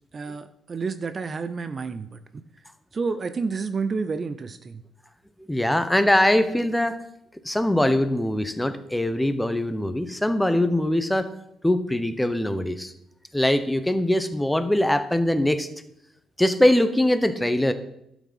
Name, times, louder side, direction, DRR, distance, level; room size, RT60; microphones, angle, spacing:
voice 1, 0.1-2.4 2.9-4.8, right 4 dB, 40° right, 11 dB, 0.6 m, -30 dB
voice 2, 5.5-7.0 7.4-11.3 11.6-12.9 13.3-15.7 16.4-17.7, left 1 dB, 5° left, 11 dB, 1.1 m, -22 dB
12.0 x 6.1 x 5.6 m, 0.78 s
hypercardioid pair, 45°, 0 cm